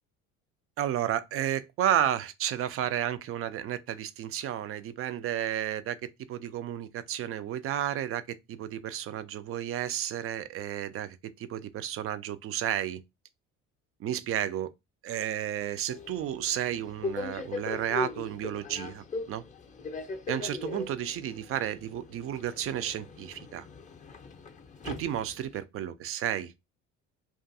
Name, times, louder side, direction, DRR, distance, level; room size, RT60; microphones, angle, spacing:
voice 1, 0.8-6.0 6.3-13.0 14.0-14.7 15.0-19.4 20.3-23.7 24.8-26.5, right 10 dB, 40° right, 0.4 m, -32 dB
Subway metro underground, 15.9-25.6, left 3 dB, 20° left, 0.5 m, -40 dB
2.5 x 2.3 x 2.6 m
hypercardioid pair, 60°, 37 cm